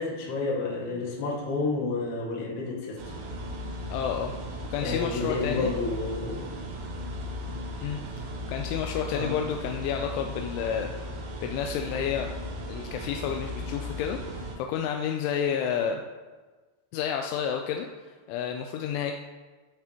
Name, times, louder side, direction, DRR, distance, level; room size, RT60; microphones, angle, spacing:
voice 1, 0.0-3.0 4.8-6.6 9.1-9.4, left 3 dB, 65° left, -3 dB, 3.8 m, -30 dB
sound 1, 3.0-14.6, equal, 80° right, 1.7 m, -37 dB
voice 2, 3.9-4.3 4.7-5.7 7.8-8.0 8.5-10.9 11.4-12.3 12.7-16.0 16.9-17.9 18.3-19.1, left 8 dB, 85° left, 3 dB, 3.1 m, -30 dB
16.5 x 7.2 x 3.0 m, 1.3 s
omnidirectional pair, 5.4 m